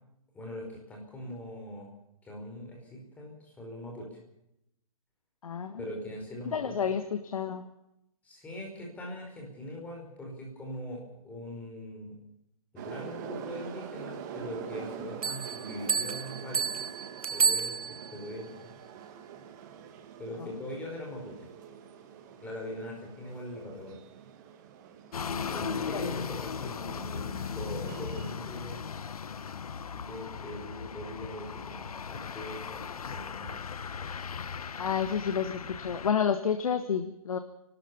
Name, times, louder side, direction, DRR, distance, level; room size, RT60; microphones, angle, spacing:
voice 1, 0.3-1.9 2.2-4.2 5.8-6.6 8.2-12.2 12.7-16.7 17.3-18.5 20.2-21.5 22.4-24.0 25.2-28.9 29.9-33.6, left 1 dB, 10° left, -1 dB, 5.0 m, -41 dB
voice 2, 5.4-5.8 6.5-7.7 20.4-20.5 25.9-26.2 34.8-37.4, left 7 dB, 75° left, 8 dB, 1.7 m, -30 dB
sound 1, 12.8-28.3, right 8 dB, 30° right, 1.8 m, -45 dB
sound 2, 15.2-18.3, right 6 dB, 80° right, 1.3 m, -30 dB
sound 3, 25.1-36.1, left 6 dB, 90° left, 1.1 m, -38 dB
29.5 x 13.0 x 7.0 m, 0.84 s
hypercardioid pair, 160°, 18 cm